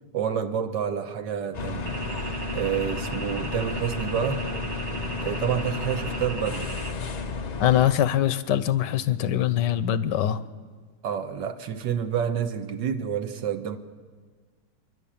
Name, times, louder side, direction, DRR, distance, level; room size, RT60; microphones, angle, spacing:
voice 1, 0.1-1.9 2.5-4.5 5.2-6.7 11.0-13.8, right 8 dB, 75° right, 1.7 m, -28 dB
sound 1, 1.5-8.0, left 3 dB, 55° left, 0.4 m, -32 dB
sound 2, 1.9-6.9, right 4 dB, 25° right, 1.0 m, -38 dB
voice 2, 7.6-10.4, left 11 dB, 75° left, 1.4 m, -23 dB
29.0 x 12.0 x 8.8 m
omnidirectional pair, 1.9 m